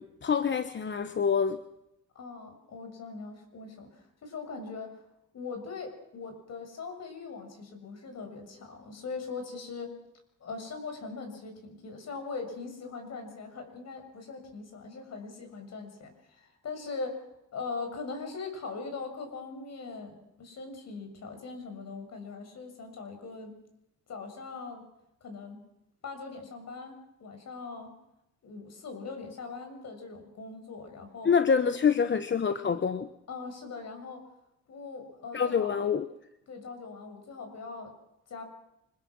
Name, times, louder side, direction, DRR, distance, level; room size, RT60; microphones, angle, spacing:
voice 1, 0.0-1.6 31.2-33.1 35.3-36.0, left 6 dB, 40° left, 10 dB, 1.1 m, -26 dB
voice 2, 2.2-4.9 5.3-9.9 10.4-17.2 17.5-23.6 24.1-24.9 25.2-25.6 26.0-27.9 28.4-31.3 33.3-34.3 34.7-35.8 36.5-37.9 38.3-38.4, left 4 dB, 60° left, 5 dB, 6.9 m, -41 dB
25.5 x 21.0 x 6.4 m, 0.85 s
cardioid pair, 90°, 30 cm